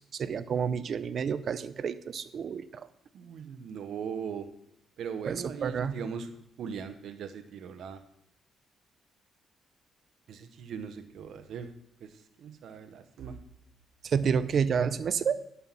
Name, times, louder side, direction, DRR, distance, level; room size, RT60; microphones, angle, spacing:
voice 1, 0.1-2.9 5.2-6.0 14.0-15.4, right 6 dB, 55° right, 14 dB, 0.6 m, -29 dB
voice 2, 3.1-4.5 5.0-6.3 6.6-8.0 10.3-11.7 12.0-13.4, right 7 dB, 70° right, 9 dB, 1.0 m, -39 dB
11.5 x 5.7 x 5.7 m, 0.77 s
cardioid pair, 90°, 0 cm